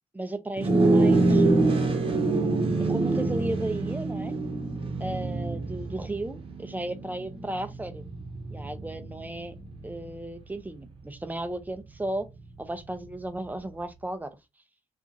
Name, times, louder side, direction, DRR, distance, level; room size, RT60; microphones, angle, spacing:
voice 1, 0.1-2.0 2.3-4.3 5.0-8.0 8.5-9.6 9.8-12.3 12.6-14.3, right 1 dB, 15° right, 0.4 m, -35 dB
sound 1, 0.6-10.2, right 2 dB, 45° right, 0.8 m, -26 dB
2.8 x 2.4 x 2.4 m
cardioid pair, 85°, 12 cm